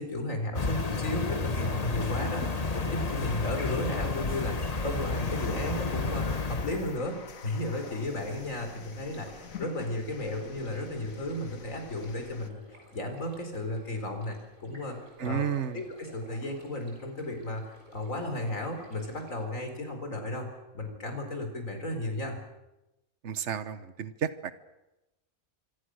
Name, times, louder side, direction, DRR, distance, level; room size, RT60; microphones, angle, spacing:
voice 1, 0.0-4.6 4.8-12.6 12.9-15.5 15.7-22.4, left 1 dB, 75° left, 5 dB, 4.7 m, -34 dB
sound 1, 0.5-6.9, left 4 dB, 30° left, 1.4 m, -31 dB
sound 2, 1.6-12.5, left 6 dB, 90° left, 1.7 m, -46 dB
sound 3, 7.4-19.4, right 1 dB, 85° right, 6.6 m, -54 dB
voice 2, 15.2-15.8 23.2-24.5, right 8 dB, 60° right, 13 dB, 1.4 m, -32 dB
26.0 x 25.5 x 6.4 m, 0.99 s
omnidirectional pair, 1.4 m